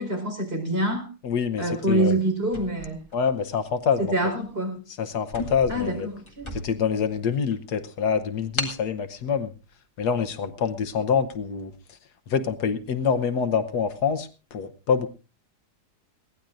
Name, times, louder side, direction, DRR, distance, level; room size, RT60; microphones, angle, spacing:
voice 1, 0.0-1.1 1.6-3.0 4.0-4.8 5.7-6.5, right 1 dB, 35° right, 2 dB, 4.7 m, -26 dB
voice 2, 1.2-2.2 3.1-4.1 5.0-6.1 6.5-9.5 10.0-11.7 12.3-15.1, left 6 dB, 75° left, 10 dB, 1.5 m, -26 dB
sound 1, 2.4-3.8 4.4-4.6 4.9-5.0 5.3-7.0 7.5-7.6 8.6-8.9, left 1 dB, 15° left, 1.9 m, -35 dB
22.0 x 17.0 x 2.6 m, 0.32 s
omnidirectional pair, 1.7 m